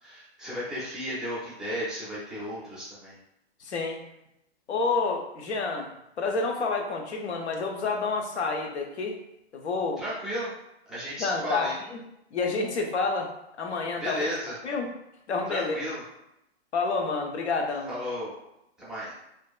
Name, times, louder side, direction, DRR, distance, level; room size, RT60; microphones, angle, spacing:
voice 1, 0.0-3.2 10.0-10.5 10.9-11.7 14.0-14.5 15.5-16.0 17.9-18.4 18.8-19.1, equal, ahead, -11 dB, 0.4 m, -34 dB
voice 2, 3.6-4.0 4.7-5.9 6.2-9.2 9.5-10.0 11.2-12.0 12.3-13.3 13.6-14.3 14.6-14.9 15.3-15.7 16.7-17.9, left 4 dB, 90° left, 2 dB, 0.6 m, -29 dB
2.7 x 2.2 x 2.3 m, 0.84 s
hypercardioid pair, 140°, 33 cm